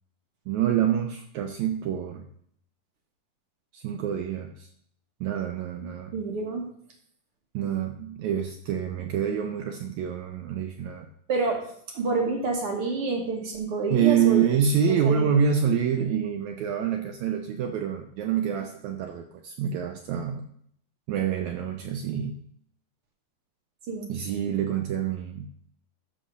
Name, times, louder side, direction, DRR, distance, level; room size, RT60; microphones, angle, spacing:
voice 1, 0.5-2.3 3.7-4.7 5.2-6.1 7.5-11.1 13.9-20.5 21.1-22.4 24.1-25.5, right 8 dB, 75° right, 5 dB, 1.9 m, -26 dB
voice 2, 6.1-6.7 11.3-11.6 11.9-14.4 14.9-15.3 23.9-24.2, right 3 dB, 55° right, 2 dB, 2.0 m, -28 dB
13.0 x 4.3 x 6.5 m, 0.65 s
omnidirectional pair, 3.7 m